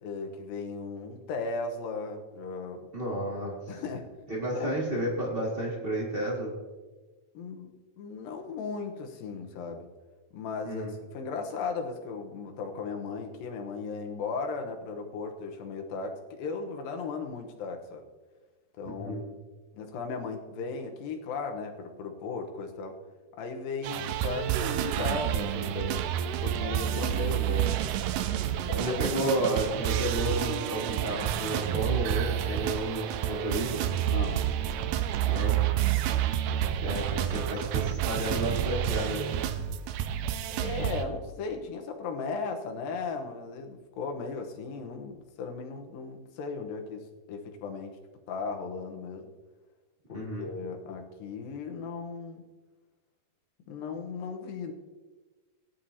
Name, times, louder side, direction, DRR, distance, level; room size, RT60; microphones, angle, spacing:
voice 1, 0.0-2.9 3.7-4.1 4.5-4.8 7.3-9.9 10.3-18.0 18.8-19.3 19.7-23.0 23.4-26.1 26.4-27.8 28.4-28.9 29.2-29.4 34.1-34.5 35.2-35.4 35.7-35.8 40.6-47.0 47.3-48.0 48.3-49.3 50.1-52.4 53.7-54.7, left 4 dB, 70° left, 4 dB, 2.5 m, -36 dB
voice 2, 2.9-3.5 4.3-6.5 10.6-10.9 19.0-19.2 28.8-33.8 35.3-35.5 36.8-39.2 50.1-50.5, right 1 dB, 55° right, -3 dB, 0.6 m, -31 dB
sound 1, 23.8-41.1, right 11 dB, 80° right, 2.4 m, -29 dB
17.5 x 11.0 x 2.8 m, 1.3 s
omnidirectional pair, 4.8 m